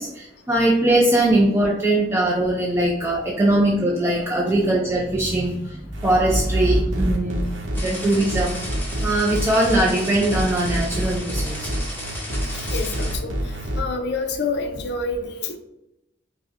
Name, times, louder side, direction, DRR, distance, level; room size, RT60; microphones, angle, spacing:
voice 1, 0.0-7.4 7.8-8.6 9.0-11.9, right 1 dB, 15° right, -3 dB, 0.3 m, -21 dB
sound 1, 5.9-13.8, equal, 70° right, 0.8 m, -28 dB
sound 2, 7.7-13.1, left 1 dB, 10° left, 0.7 m, -34 dB
voice 2, 12.5-13.3 13.8-15.6, left 3 dB, 60° left, 5 dB, 0.4 m, -27 dB
5.1 x 2.1 x 2.5 m, 0.89 s
head